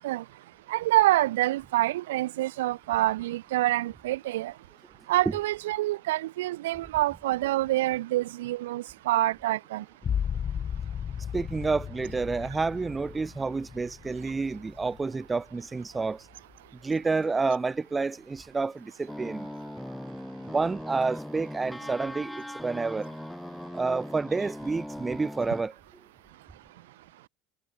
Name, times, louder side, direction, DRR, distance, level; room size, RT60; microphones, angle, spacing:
voice 1, 0.7-4.5 5.1-9.8, right 16 dB, 75° right, 0.7 m, -26 dB
sound 1, 10.0-15.5 15.9-16.6, left 8 dB, 40° left, 0.4 m, -35 dB
voice 2, 11.3-16.3 16.8-19.5 20.4-23.1 23.7-25.7, right 4 dB, 20° right, 0.4 m, -29 dB
sound 2, 19.1-25.6, left 1 dB, 5° left, 2.5 m, -39 dB
hypercardioid pair, 70°, 0 cm